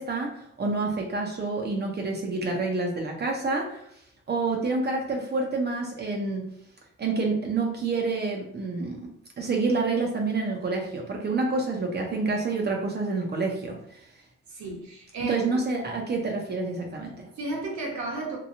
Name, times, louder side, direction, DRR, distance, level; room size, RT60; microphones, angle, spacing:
voice 1, 0.0-3.8 4.3-6.5 7.0-14.0 15.2-17.3, right 3 dB, 35° right, 0 dB, 0.6 m, -28 dB
voice 2, 14.5-15.5 17.0-17.1 17.4-18.4, right 2 dB, 65° right, -1 dB, 1.0 m, -33 dB
2.8 x 2.2 x 2.6 m, 0.72 s
cardioid pair, 90°, 30 cm